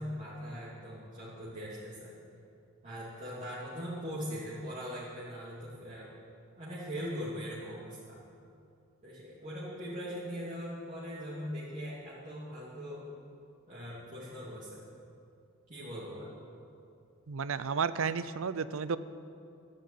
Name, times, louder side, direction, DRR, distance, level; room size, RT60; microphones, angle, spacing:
voice 1, 0.0-2.1 2.8-6.1 6.6-8.2 9.0-13.1 13.7-14.8 15.7-16.3, equal, 35° right, -9 dB, 2.9 m, -41 dB
voice 2, 17.3-19.0, right 6 dB, 65° right, 14 dB, 0.6 m, -32 dB
13.0 x 11.5 x 8.7 m, 2.5 s
head